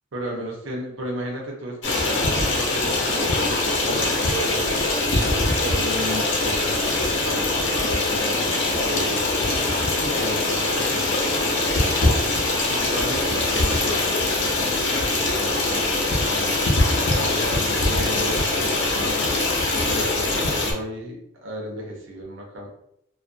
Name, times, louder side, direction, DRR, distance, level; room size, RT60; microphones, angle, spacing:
voice 1, 0.1-4.7 5.6-9.2 10.1-12.2 12.7-14.3 14.6-19.4 19.8-22.7, equal, 85° right, -1 dB, 0.8 m, -34 dB
Stream, 1.8-20.7, left 2 dB, 65° left, 0.6 m, -22 dB
2.4 x 2.2 x 2.5 m, 0.77 s
head